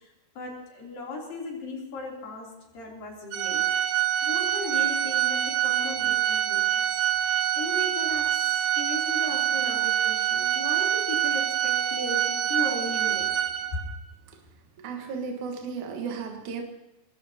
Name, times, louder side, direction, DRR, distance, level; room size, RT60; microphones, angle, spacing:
voice 1, 0.0-6.9 7.2-8.4 8.7-13.4, left 2 dB, 85° left, 5.0 m, -37 dB
Organ, 3.3-14.0, right 11 dB, 80° right, 1.3 m, -25 dB
voice 2, 14.8-16.6, right 5 dB, 65° right, 2.7 m, -34 dB
25.0 x 20.0 x 2.9 m
omnidirectional pair, 3.9 m